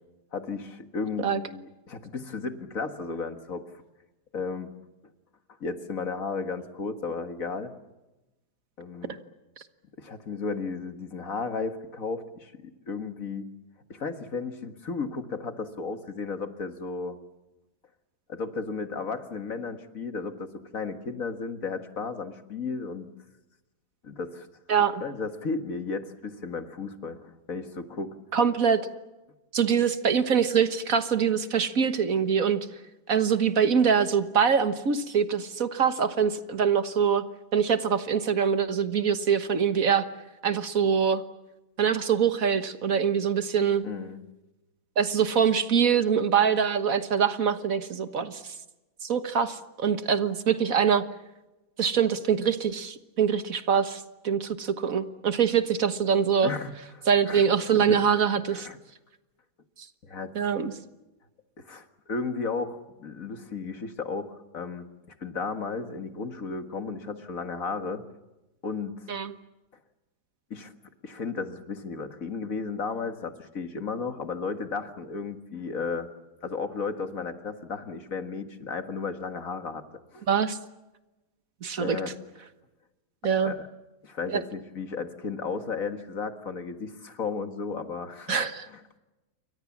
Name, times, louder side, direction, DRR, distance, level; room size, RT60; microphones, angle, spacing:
voice 1, 0.3-3.6 4.3-4.7 5.6-7.7 8.8-9.2 10.0-12.5 12.9-13.5 13.9-17.2 18.3-23.1 24.0-24.5 25.0-28.1 43.8-44.2 56.4-57.5 57.7-58.0 58.5-58.8 60.0-60.3 61.6-64.9 65.2-68.0 68.6-68.9 70.5-70.7 71.0-76.1 76.4-79.8 80.1-80.2 81.8-82.1 83.4-83.6 84.0-88.4 88.7-88.8, left 4 dB, 55° left, 8 dB, 2.1 m, -34 dB
voice 2, 24.7-25.0 28.3-28.8 29.5-32.6 33.1-37.2 37.5-40.1 40.4-41.2 41.8-43.8 45.0-48.5 49.0-51.0 51.8-56.5 57.1-58.7 60.4-60.7 69.1-69.3 80.3-80.6 81.6-82.0 83.2-83.5 84.3-84.4 88.3-88.7, right 7 dB, 60° right, 10 dB, 1.7 m, -24 dB
28.5 x 24.0 x 7.3 m, 1.0 s
omnidirectional pair, 1.7 m